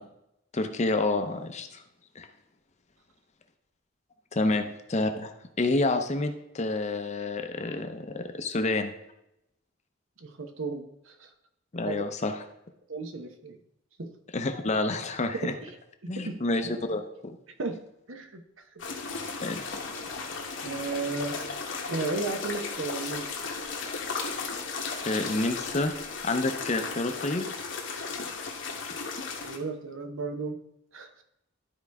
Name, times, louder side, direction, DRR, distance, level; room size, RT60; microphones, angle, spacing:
voice 1, 0.5-1.8 2.2-2.3 4.3-4.6 4.9-5.3 5.6-8.9 11.7-12.3 14.3-15.5 16.1-17.4 19.4-19.6 25.1-25.9 26.2-27.5, left 2 dB, 35° left, 7 dB, 0.7 m, -28 dB
voice 2, 10.2-11.3 11.8-12.0 12.9-13.6 14.0-14.1 15.4-15.7 16.0-16.4 17.6-17.8 18.1-18.4 20.6-21.4 21.9-23.3 29.4-30.6 30.9-31.2, right 3 dB, 75° right, 6 dB, 1.0 m, -34 dB
sound 1, 18.8-29.6, left 4 dB, 65° left, 1.2 m, -35 dB
12.0 x 4.7 x 3.5 m, 0.84 s
head